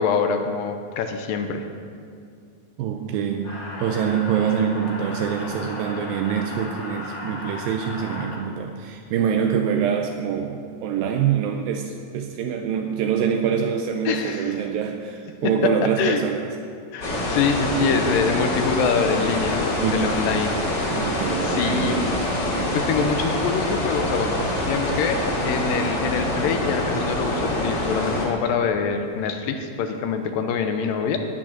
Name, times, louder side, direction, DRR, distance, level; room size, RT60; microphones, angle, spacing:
voice 1, 0.0-1.6 14.1-14.6 16.0-16.2 16.9-20.6 20.9-21.0 21.4-22.0 22.7-24.4 24.7-31.2, left 5 dB, 80° left, 6 dB, 2.5 m, -25 dB
voice 2, 2.8-16.5 19.8-20.3 20.9-22.8, right 7 dB, 85° right, 4 dB, 2.4 m, -25 dB
sound 1, 3.4-8.4, left 2 dB, 55° left, 3.3 m, -35 dB
sound 2, 17.0-28.3, left 1 dB, 35° left, 2.7 m, -25 dB
15.5 x 9.0 x 6.0 m, 2.3 s
omnidirectional pair, 4.0 m